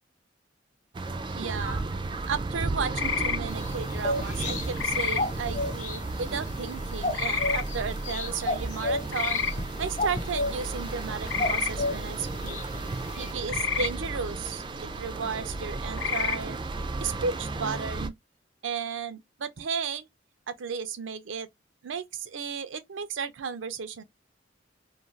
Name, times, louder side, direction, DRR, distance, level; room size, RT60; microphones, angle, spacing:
sound 1, 0.9-18.1, right 2 dB, 25° right, 0.3 m, -34 dB
voice 1, 1.4-1.8 2.2-9.4 9.8-12.6 13.2-16.6 17.0-18.1 18.6-20.1 20.5-21.5 21.8-24.0, right 6 dB, 80° right, 0.5 m, -34 dB
sound 2, 2.9-3.4 4.8-5.2 7.1-7.6 9.1-9.5 11.3-11.7 13.5-13.9 15.9-16.4, left 6 dB, 75° left, 0.6 m, -28 dB
sound 3, 3.5-13.3, left 2 dB, 40° left, 0.8 m, -34 dB
2.5 x 2.3 x 3.1 m
head